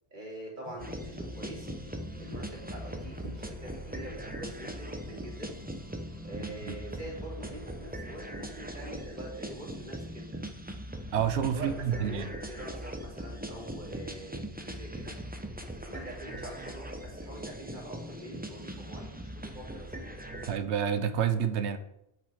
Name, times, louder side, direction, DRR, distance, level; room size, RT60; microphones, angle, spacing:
voice 1, 0.1-1.7 2.2-5.6 6.2-10.4 11.5-15.2 15.8-20.0, right 1 dB, 45° right, -3 dB, 2.8 m, -44 dB
sound 1, 0.6-8.6, left 2 dB, 30° left, 1.5 m, -51 dB
sound 2, 0.8-20.6, right 1 dB, 10° right, 0.5 m, -40 dB
voice 2, 11.1-12.3 20.5-21.8, right 8 dB, 85° right, 11 dB, 1.0 m, -28 dB
7.8 x 6.5 x 4.9 m, 0.82 s
omnidirectional pair, 1.1 m